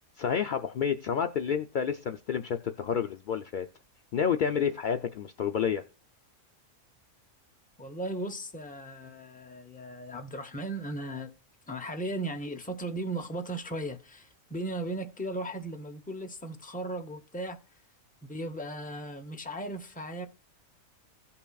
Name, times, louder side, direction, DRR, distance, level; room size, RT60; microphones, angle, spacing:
voice 1, 0.2-3.7 4.1-5.8, left 7 dB, 75° left, 0.4 m, -29 dB
voice 2, 7.8-11.3 11.7-17.6 18.2-20.3, right 1 dB, 10° left, 0.6 m, -37 dB
16.5 x 5.8 x 2.3 m
omnidirectional pair, 1.4 m